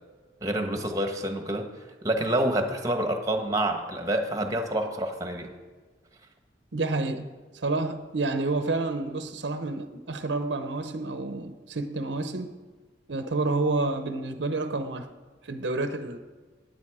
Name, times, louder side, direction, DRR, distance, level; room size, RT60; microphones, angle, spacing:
voice 1, 0.4-1.7 2.0-5.5, right 1 dB, 20° right, 1.3 m, -27 dB
voice 2, 6.7-12.6 13.1-15.1 15.4-16.2, right 2 dB, 75° right, 0.8 m, -29 dB
16.5 x 9.5 x 4.9 m
head